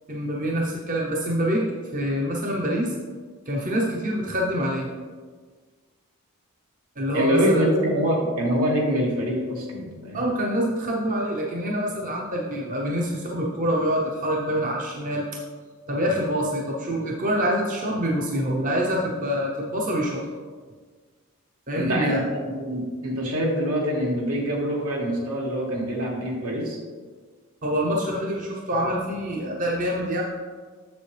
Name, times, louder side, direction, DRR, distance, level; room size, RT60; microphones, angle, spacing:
voice 1, 0.1-2.9 3.5-4.9 7.0-7.7 10.1-15.3 15.9-20.2 21.7-22.2 27.6-30.2, equal, 35° right, -2 dB, 0.8 m, -26 dB
voice 2, 7.1-10.3 21.7-26.8, equal, 75° right, -2 dB, 1.7 m, -25 dB
7.2 x 7.1 x 3.3 m, 1.5 s
head